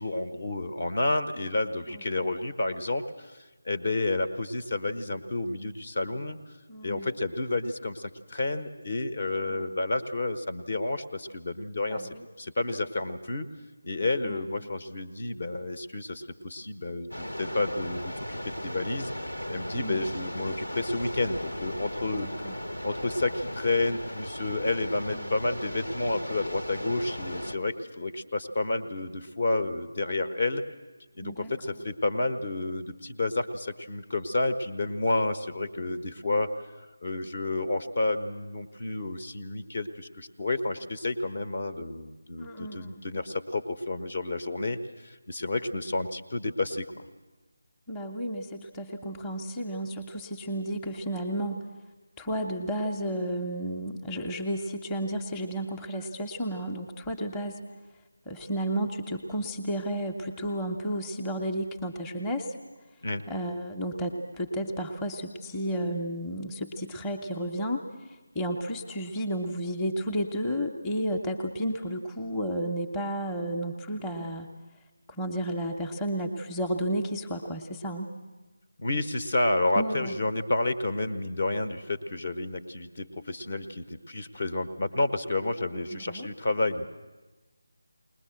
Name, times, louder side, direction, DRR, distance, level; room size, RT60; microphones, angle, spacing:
voice 1, 0.0-6.4 6.8-12.1 12.4-13.5 13.8-22.3 22.8-30.6 31.2-36.7 37.0-47.1 63.0-63.2 78.8-86.9, left 2 dB, 45° left, 9 dB, 1.1 m, -30 dB
voice 2, 1.9-2.3 6.7-7.1 9.4-9.8 11.8-12.3 14.2-14.4 19.7-20.0 22.1-22.5 25.1-25.3 31.2-31.5 42.4-43.0 47.9-51.7 52.2-57.6 58.3-62.6 63.3-74.5 75.1-78.1 79.8-80.1 85.9-86.3, right 1 dB, 10° left, 1 dB, 1.0 m, -32 dB
sound 1, 17.1-27.6, equal, 80° left, 1.5 m, -37 dB
20.5 x 20.0 x 7.8 m, 1.2 s
figure-of-eight pair, 160°, 0 cm